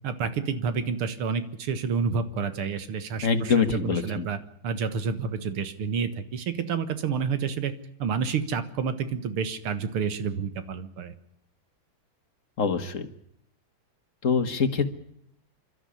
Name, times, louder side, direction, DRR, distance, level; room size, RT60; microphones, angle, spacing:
voice 1, 0.0-4.4 4.6-7.7 8.0-11.1, right 6 dB, 85° right, 11 dB, 2.4 m, -29 dB
voice 2, 3.2-4.3 12.6-13.1 14.2-14.9, left 5 dB, 40° left, 10 dB, 1.6 m, -24 dB
27.0 x 12.5 x 10.0 m, 0.74 s
omnidirectional pair, 2.3 m